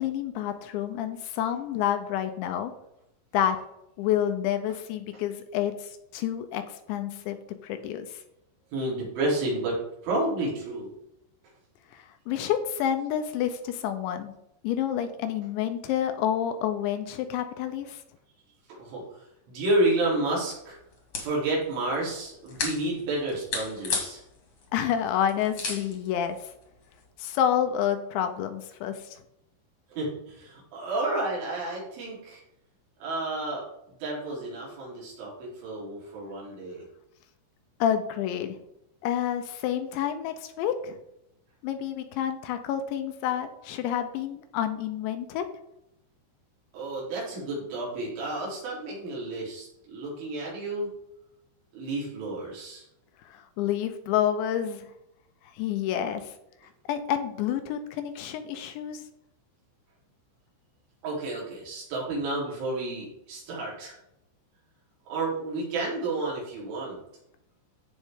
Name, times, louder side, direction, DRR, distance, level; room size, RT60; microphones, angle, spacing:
voice 1, 0.0-2.7 3.3-3.6 4.0-7.4 7.6-8.2 11.9-14.3 14.6-18.0 24.7-26.5 27.2-29.2 37.8-38.6 39.0-41.0 41.6-45.5 53.3-54.9 55.5-56.3 56.9-59.0, left 10 dB, 80° left, 8 dB, 2.9 m, -29 dB
voice 2, 8.7-10.9 18.7-20.8 21.2-24.2 29.9-32.4 33.0-33.6 34.0-36.8 46.7-50.9 51.7-52.8 61.0-64.0 65.1-67.0, right 2 dB, 75° right, -5 dB, 6.1 m, -31 dB
sound 1, 19.8-27.1, left 4 dB, 45° left, 2.0 m, -37 dB
14.5 x 5.3 x 3.6 m, 0.81 s
omnidirectional pair, 5.5 m